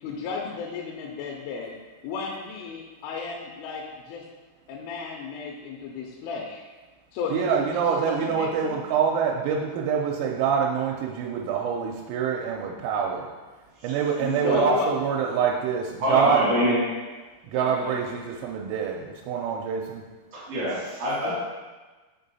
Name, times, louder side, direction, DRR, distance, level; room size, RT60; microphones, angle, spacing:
voice 1, 0.0-1.7 2.0-4.2 4.7-6.6 7.1-8.8 14.2-15.0 17.5-18.2, left 5 dB, 85° left, -1 dB, 3.0 m, -34 dB
voice 2, 7.3-13.3 13.8-16.5 17.5-20.0, right 7 dB, 85° right, -1 dB, 3.2 m, -26 dB
voice 3, 14.4-14.8 16.0-16.8 20.3-21.3, equal, 70° right, -8 dB, 1.5 m, -25 dB
7.2 x 3.7 x 4.0 m, 1.3 s
omnidirectional pair, 5.9 m